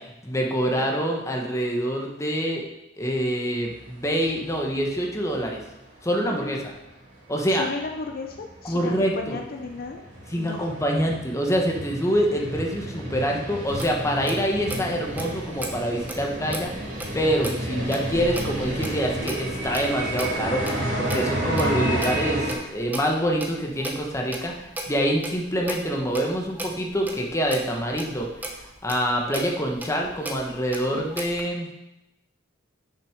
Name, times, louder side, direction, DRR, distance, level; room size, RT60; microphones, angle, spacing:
voice 1, 0.0-2.6 3.0-5.6 6.0-6.6 7.3-7.7 8.6-9.4 10.3-16.8 17.1-20.6 21.0-28.3 28.8-31.7, equal, 15° left, 0 dB, 1.1 m, -26 dB
sound 1, 3.7-5.7 6.1-6.2 6.7-6.8 7.1-7.2 7.5-22.5, right 1 dB, 90° right, 2.7 m, -31 dB
voice 2, 6.2-6.7 7.5-10.0 10.3-10.7 30.9-31.1, left 3 dB, 50° left, 3 dB, 0.6 m, -35 dB
Clock, 13.7-31.4, right 1 dB, 10° right, 1.0 m, -38 dB
6.8 x 5.9 x 5.1 m, 0.92 s
head